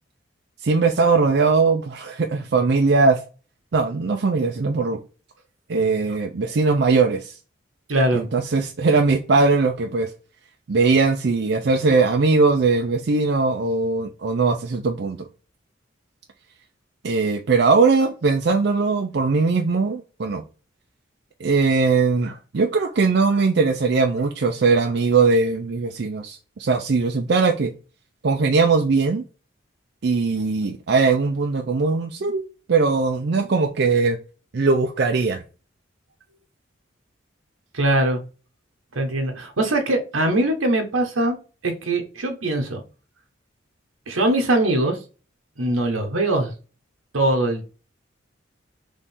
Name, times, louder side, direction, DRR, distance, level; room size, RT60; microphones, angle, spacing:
voice 1, 0.6-3.2 3.7-5.0 5.7-7.4 8.1-10.1 10.7-15.3 17.0-20.4 21.4-27.7 28.2-29.2 30.0-32.4 32.7-34.2 34.5-35.4, right 4 dB, 55° right, 0.4 m, -20 dB
voice 2, 7.9-8.2 37.7-38.2 38.9-41.4 41.6-42.8 44.1-45.0 45.6-46.5 47.1-47.6, right 1 dB, 90° right, 1.0 m, -21 dB
3.6 x 3.1 x 4.2 m
head